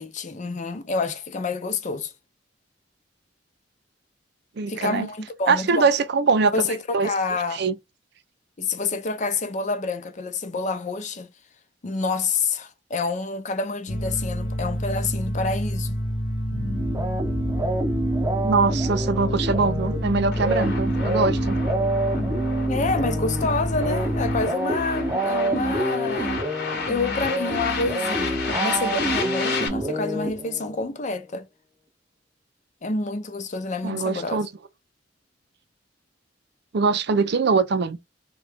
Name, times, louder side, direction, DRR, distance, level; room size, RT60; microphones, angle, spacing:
voice 1, 0.0-2.1 4.7-5.9 6.5-7.7 8.6-11.3 11.8-15.9 22.7-26.4 26.9-31.5 32.8-34.4, left 3 dB, 40° left, 0.6 m, -28 dB
voice 2, 4.6-5.1 5.5-7.1 7.5-7.8 18.4-21.6 33.8-34.5 36.7-38.0, right 4 dB, 60° right, 0.5 m, -22 dB
sound 1, 13.9-24.4, equal, 80° left, 0.8 m, -28 dB
sound 2, 16.5-30.8, right 1 dB, 15° right, 0.7 m, -28 dB
sound 3, 20.3-29.7, left 4 dB, 60° left, 1.0 m, -32 dB
3.7 x 2.3 x 3.4 m
head